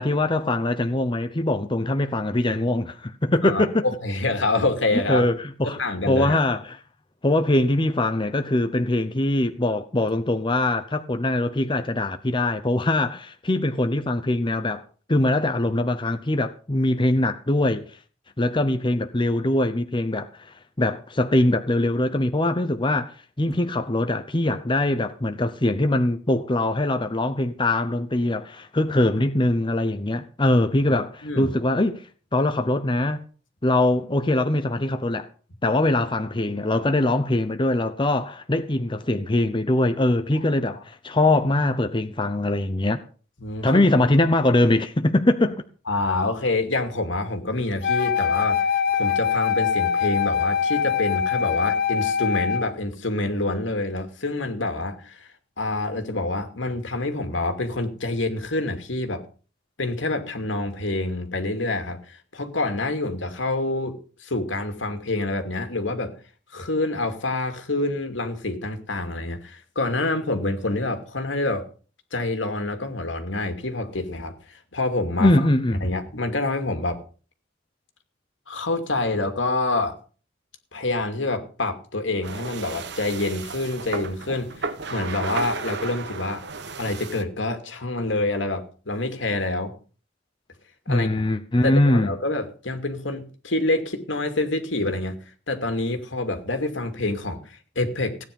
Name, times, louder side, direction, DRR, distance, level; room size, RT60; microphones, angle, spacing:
voice 1, 0.0-3.9 5.1-6.8 7.2-14.8 15.1-18.0 18.4-23.1 23.4-33.2 33.6-35.3 35.6-43.0 43.6-45.6 75.2-75.8 90.9-92.1, left 1 dB, 25° left, 0.8 m, -22 dB
voice 2, 3.4-5.3 5.8-6.4 31.2-31.5 40.7-40.8 43.4-43.8 45.9-48.6 48.9-55.3 55.6-59.2 59.8-63.9 64.2-66.1 66.5-71.6 72.1-75.3 75.8-77.0 78.5-79.9 80.7-86.4 86.8-89.7 90.9-91.1 91.6-95.2 95.5-98.2, left 2 dB, 80° left, 2.5 m, -27 dB
Wind instrument woodwind instrument, 47.8-52.7, left 7 dB, 55° left, 1.0 m, -23 dB
sound 1, 82.2-87.2, right 4 dB, 65° right, 1.3 m, -34 dB
16.5 x 9.7 x 5.4 m
head